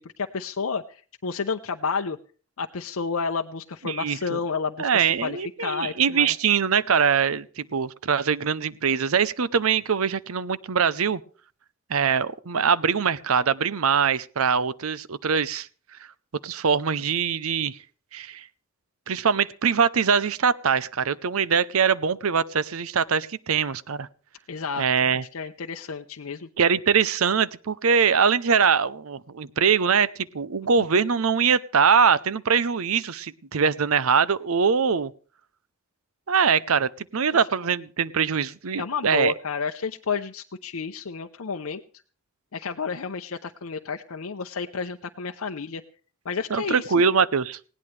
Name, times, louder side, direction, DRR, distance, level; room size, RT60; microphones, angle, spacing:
voice 1, 0.0-2.2 2.6-6.3 24.5-26.5 37.3-37.4 38.8-41.8 42.5-45.8 46.2-46.9, left 5 dB, 75° left, 5 dB, 0.7 m, -31 dB
voice 2, 3.8-4.4 4.8-11.2 11.9-15.7 16.4-17.8 18.1-18.5 19.1-24.1 24.8-25.2 26.6-30.1 30.3-35.1 36.3-39.3 46.5-47.6, right 6 dB, 75° right, 18 dB, 0.7 m, -23 dB
19.5 x 17.0 x 3.3 m, 0.40 s
head